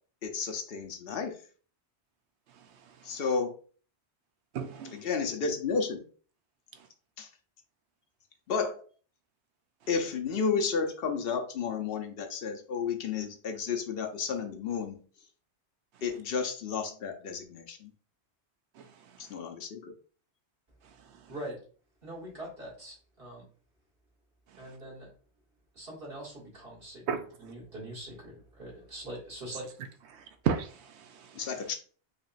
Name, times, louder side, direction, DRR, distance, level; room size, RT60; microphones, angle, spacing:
voice 1, 0.2-1.4 3.0-3.6 4.9-6.0 7.2-7.3 8.5-8.8 9.9-15.0 16.0-17.9 19.2-19.9 31.3-31.7, left 5 dB, 65° left, 0.8 m, -32 dB
voice 2, 4.5-5.0 18.8-18.9 27.1-27.2 30.1-31.4, right 7 dB, 80° right, 0.9 m, -33 dB
voice 3, 21.3-21.6 22.0-23.4 24.6-25.1 25.7-27.0 27.4-29.7, right 1 dB, 55° right, 2.1 m, -43 dB
5.0 x 3.0 x 2.4 m
omnidirectional pair, 1.1 m